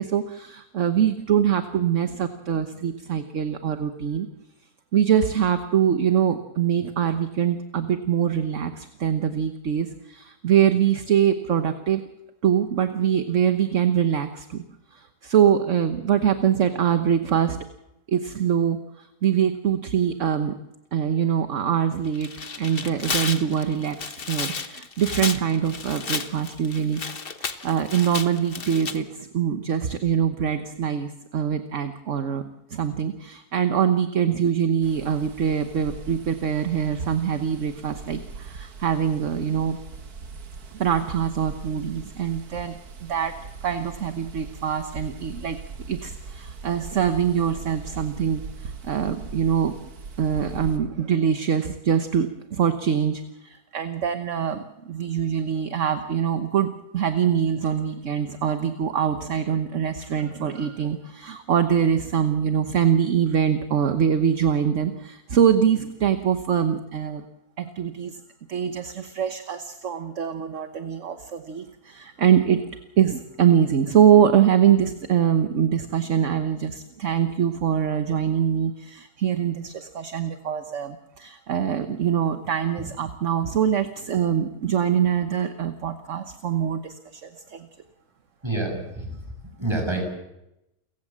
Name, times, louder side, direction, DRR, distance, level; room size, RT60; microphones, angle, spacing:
voice 1, 0.0-4.3 4.9-12.0 12.4-14.6 14.9-17.6 18.1-20.5 20.9-22.3 22.6-27.0 27.4-32.4 32.7-39.8 40.7-43.4 43.6-45.6 45.9-49.7 50.2-67.2 67.6-68.2 68.5-72.7 73.0-87.7, right 8 dB, 55° right, 9 dB, 1.3 m, -23 dB
Tearing, 22.1-29.0, left 5 dB, 40° left, 1.3 m, -32 dB
sound 1, 34.8-50.8, right 4 dB, 75° right, 2.1 m, -40 dB
voice 2, 88.4-89.2 89.6-90.0, right 2 dB, 15° right, 3 dB, 6.5 m, -27 dB
29.5 x 15.5 x 7.4 m, 0.89 s
omnidirectional pair, 1.6 m